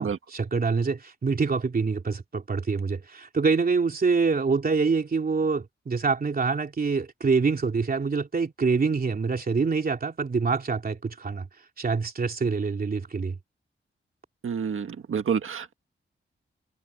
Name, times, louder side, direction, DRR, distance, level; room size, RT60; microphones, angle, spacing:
voice 1, 0.0-11.5 11.8-13.3, right 4 dB, 45° right, 3.0 m, -25 dB
voice 2, 14.4-15.7, right 7 dB, 75° right, 1.7 m, -28 dB
wide cardioid pair, 155°, 21 cm